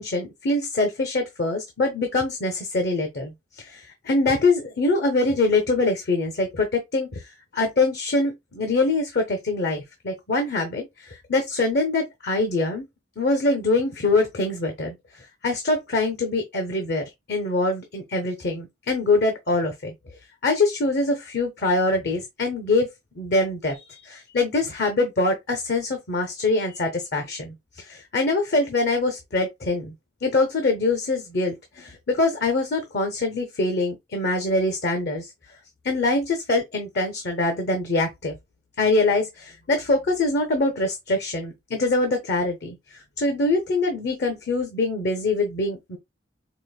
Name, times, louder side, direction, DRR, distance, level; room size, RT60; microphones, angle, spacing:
voice 1, 0.0-12.8 13.2-19.9 20.4-22.9 23.2-29.9 30.2-35.3 35.8-38.3 38.8-46.0, left 2 dB, 60° left, 0.7 m, -24 dB
4.9 x 2.1 x 2.3 m
head